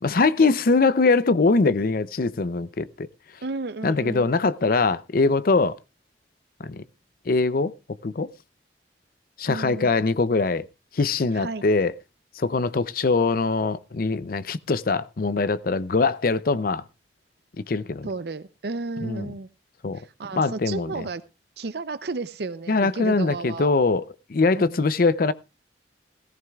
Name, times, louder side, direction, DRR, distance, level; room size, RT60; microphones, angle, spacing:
voice 1, 0.0-3.1 3.8-5.8 6.6-6.8 7.3-7.7 8.0-8.3 9.4-10.7 10.9-11.9 12.4-16.8 17.6-18.1 19.0-19.3 19.8-20.0 20.4-20.9 22.7-24.0 24.3-25.3, left 3 dB, 55° left, 0.5 m, -22 dB
voice 2, 3.4-4.3 9.5-9.9 11.3-11.6 18.0-19.5 19.9-21.2 21.6-23.7 24.5-24.8, right 3 dB, 65° right, 0.6 m, -33 dB
17.0 x 14.5 x 2.4 m
head